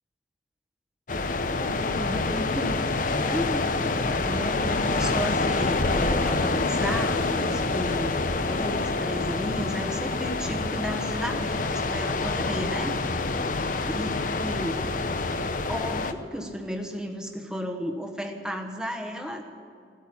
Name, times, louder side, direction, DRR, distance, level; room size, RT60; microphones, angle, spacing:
sound 1, 1.1-16.1, left 3 dB, 50° left, 0.7 m, -27 dB
voice 1, 1.5-2.8 3.2-8.2 8.4-13.1 13.9-14.1 14.4-14.8 15.7-19.4, equal, 5° right, 2 dB, 1.2 m, -33 dB
16.0 x 8.5 x 9.9 m, 2.3 s
head